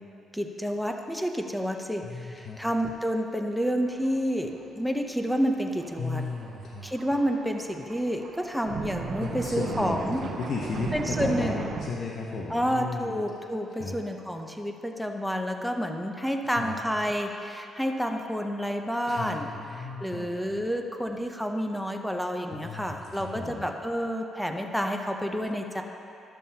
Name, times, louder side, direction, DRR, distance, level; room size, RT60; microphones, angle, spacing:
voice 1, 0.3-6.2 6.8-10.3 10.9-11.6 12.5-19.5 19.8-25.8, equal, ahead, 3 dB, 0.7 m, -29 dB
voice 2, 2.0-2.6 6.0-6.9 9.2-13.2 13.7-14.0 16.5-16.7 19.1-20.3 22.5-23.6, left 4 dB, 60° left, -3 dB, 0.9 m, -35 dB
Thunder, 3.9-4.3 4.5-4.6 5.7-11.9, right 5 dB, 60° right, 0.6 m, -37 dB
13.0 x 7.1 x 2.8 m, 2.8 s
cardioid pair, 90°, 0 cm